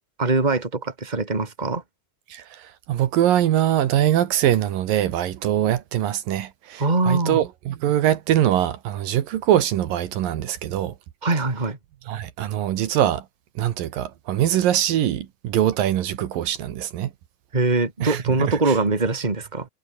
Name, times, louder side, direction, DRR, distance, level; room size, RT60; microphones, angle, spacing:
voice 1, 0.2-1.8 6.8-7.4 11.2-11.8 17.5-19.7, right 3 dB, 10° right, 3.0 m, -22 dB
voice 2, 2.3-10.9 12.1-13.3 13.6-17.1 18.0-18.8, right 11 dB, 75° right, 3.1 m, -23 dB
omnidirectional pair, 4.1 m